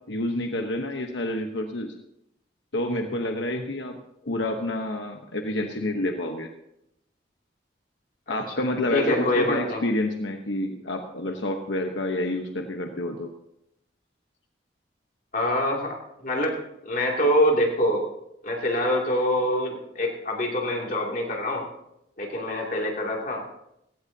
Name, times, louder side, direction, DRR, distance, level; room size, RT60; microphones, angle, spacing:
voice 1, 0.1-1.9 2.7-4.0 4.3-6.5 8.3-13.3, left 1 dB, 75° left, 4 dB, 1.1 m, -28 dB
voice 2, 8.3-8.7 8.9-9.8 15.3-18.1 18.4-21.6 22.2-23.4, left 1 dB, 45° left, -1 dB, 2.7 m, -25 dB
17.5 x 17.0 x 2.8 m, 0.81 s
head